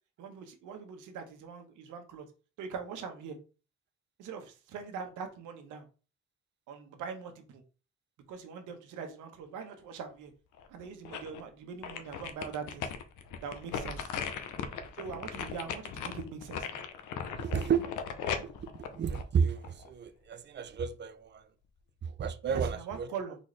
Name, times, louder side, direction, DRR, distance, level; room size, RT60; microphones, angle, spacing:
voice 1, 0.2-2.3 2.6-3.4 4.2-5.8 6.7-7.6 8.3-10.3 10.7-12.9 13.4-14.1 14.9-16.8 22.4-23.4, right 6 dB, 90° right, 1.1 m, -42 dB
sound 1, 10.6-11.4 11.8-19.9 20.3-20.4, left 7 dB, 80° left, 0.8 m, -38 dB
voice 2, 17.3-18.1 18.4-21.5 22.0-23.1, right 6 dB, 35° right, 0.5 m, -32 dB
4.1 x 4.0 x 3.2 m
cardioid pair, 90°, 30 cm